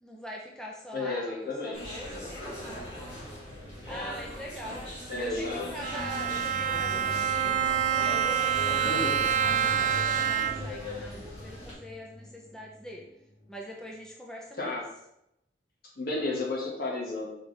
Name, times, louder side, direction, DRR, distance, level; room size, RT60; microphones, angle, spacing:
voice 1, 0.0-2.9 3.9-4.8 5.2-7.6 8.0-13.1 13.5-14.7, equal, 5° left, -2 dB, 0.7 m, -43 dB
voice 2, 0.9-2.3 5.1-5.7 8.8-9.2 14.6-14.9 16.0-17.4, left 2 dB, 55° left, -3 dB, 1.8 m, -33 dB
sound 1, 1.7-11.7, left 1 dB, 35° left, 2.4 m, -39 dB
sound 2, 5.8-13.6, left 1 dB, 85° left, 2.1 m, -43 dB
Bowed string instrument, 5.8-10.8, right 8 dB, 45° right, 0.3 m, -27 dB
6.0 x 4.8 x 3.4 m, 0.81 s
head